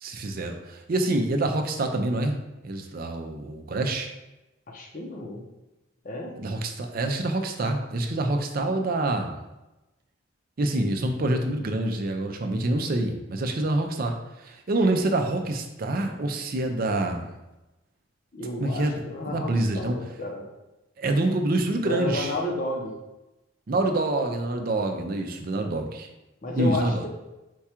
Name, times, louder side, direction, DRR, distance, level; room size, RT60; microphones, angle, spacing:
voice 1, 0.0-4.1 6.4-9.4 10.6-17.3 18.6-20.0 21.0-22.3 23.7-26.1 26.5-27.0, right 2 dB, 45° right, 4 dB, 0.5 m, -26 dB
voice 2, 4.7-5.4 6.0-6.3 18.3-20.5 21.8-22.9 26.4-27.1, left 1 dB, 40° left, 0 dB, 0.7 m, -32 dB
4.6 x 2.4 x 4.3 m, 1.0 s
head